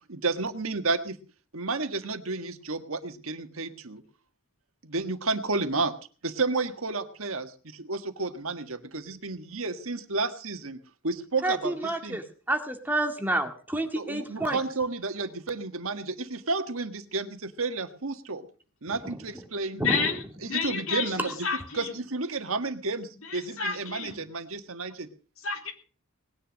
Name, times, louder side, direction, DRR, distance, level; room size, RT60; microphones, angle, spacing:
voice 1, 0.1-1.2 1.5-4.0 4.8-5.9 6.2-7.5 7.9-12.2 13.9-18.4 18.8-19.8 20.4-21.2 21.7-25.1, right 3 dB, 70° right, 8 dB, 1.6 m, -31 dB
voice 2, 11.4-14.6 18.9-19.0 19.9-20.0, right 1 dB, 10° right, 4 dB, 2.1 m, -29 dB
voice 3, 19.7-21.9 23.2-24.3 25.4-25.7, left 5 dB, 70° left, 4 dB, 3.5 m, -31 dB
19.5 x 10.0 x 6.3 m, 0.40 s
head